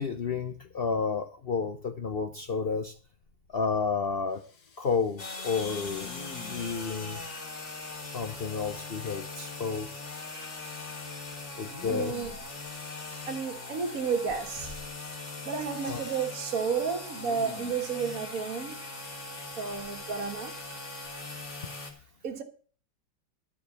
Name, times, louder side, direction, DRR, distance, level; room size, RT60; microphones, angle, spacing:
voice 1, 0.0-3.0 3.5-4.5 4.8-7.2 8.0-9.9 11.6-12.3 12.9-13.0 15.9-16.0 21.9-22.0, left 5 dB, 85° left, 0.5 m, -31 dB
Respiratory sounds, 2.4-3.0 3.2-4.0 4.3-5.3 6.0-6.8 10.4-11.1 11.6-12.7 14.3-14.9 15.9-16.6 17.1-17.9 19.7-20.6 21.0-21.2, left 5 dB, 60° left, 2.0 m, -49 dB
sound 1, 5.2-21.9, left 3 dB, 35° left, 2.3 m, -40 dB
voice 2, 11.9-12.3 13.3-14.8 15.4-18.8 19.6-20.5 22.2-22.4, right 6 dB, 50° right, 1.6 m, -32 dB
12.5 x 4.9 x 8.3 m
omnidirectional pair, 2.1 m